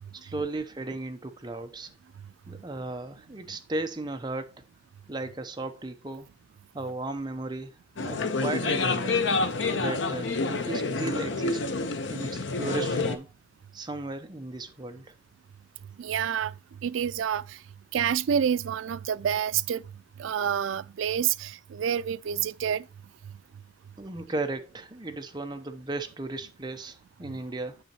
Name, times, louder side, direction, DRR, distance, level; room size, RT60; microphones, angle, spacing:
voice 1, 0.1-1.9 2.5-4.6 5.1-6.3 6.7-7.7 8.0-9.2 9.7-11.6 12.1-13.3 13.7-15.1 24.0-27.8, right 2 dB, 20° right, 0.7 m, -35 dB
sound 1, 8.0-13.2, left 3 dB, 75° left, 0.8 m, -28 dB
voice 2, 16.0-16.5 16.8-17.6 17.9-19.8 20.2-22.8, right 8 dB, 85° right, 0.4 m, -28 dB
7.8 x 6.3 x 2.9 m
head